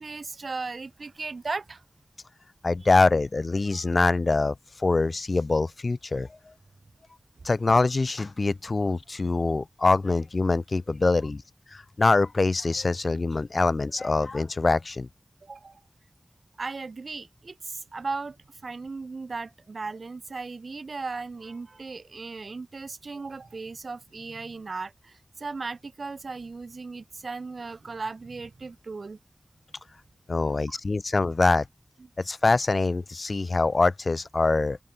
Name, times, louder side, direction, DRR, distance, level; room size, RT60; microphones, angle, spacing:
voice 1, 0.0-1.8 3.7-3.9 15.4-15.8 16.6-18.4 18.6-29.2 30.7-30.8, right 4 dB, 85° right, 1.7 m, -36 dB
voice 2, 2.6-6.3 7.4-11.4 11.7-15.1 30.3-31.6 32.2-34.8, left 3 dB, 60° left, 0.4 m, -24 dB
open air
wide cardioid pair, 75°, 0 cm